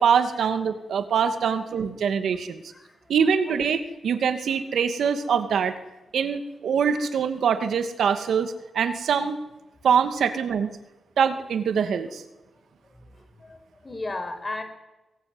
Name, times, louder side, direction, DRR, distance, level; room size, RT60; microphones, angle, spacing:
voice 1, 0.0-2.6 3.1-5.8 6.1-9.4 9.8-10.7 11.2-12.2, right 7 dB, 85° right, 9 dB, 2.4 m, -24 dB
voice 2, 13.4-14.6, left 2 dB, 25° left, 7 dB, 5.5 m, -34 dB
24.0 x 21.5 x 9.8 m, 1.0 s
wide cardioid pair, 115°, 0 cm